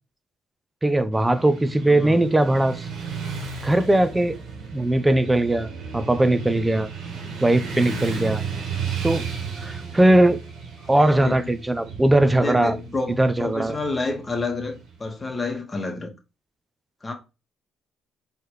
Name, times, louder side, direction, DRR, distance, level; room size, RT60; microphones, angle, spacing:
voice 1, 0.8-2.9 3.6-4.4 4.7-5.7 5.9-6.9 7.4-8.4 9.0-9.3 9.6-10.4 10.9-12.7 13.2-13.7, right 1 dB, 15° right, 0.6 m, -19 dB
Motorcycle / Traffic noise roadway noise, 1.1-15.2, right 5 dB, 75° right, 1.6 m, -34 dB
voice 2, 1.9-2.2 10.9-11.5 12.3-16.1 17.0-17.1, left 3 dB, 25° left, 1.4 m, -29 dB
4.5 x 3.3 x 3.2 m
supercardioid pair, 60°, 0 cm